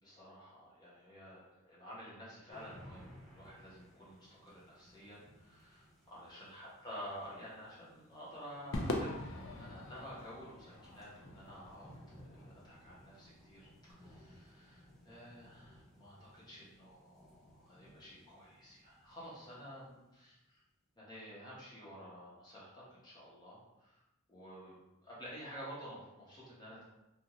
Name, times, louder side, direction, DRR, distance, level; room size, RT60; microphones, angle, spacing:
voice 1, 0.0-11.9 12.2-20.6 21.0-24.0 24.3-26.9, equal, 20° left, -8 dB, 0.9 m, -51 dB
sound 1, 2.5-20.3, equal, ahead, 0.6 m, -61 dB
Crowd / Fireworks, 8.7-13.2, left 2 dB, 70° left, 0.4 m, -42 dB
2.5 x 2.4 x 3.0 m, 0.94 s
head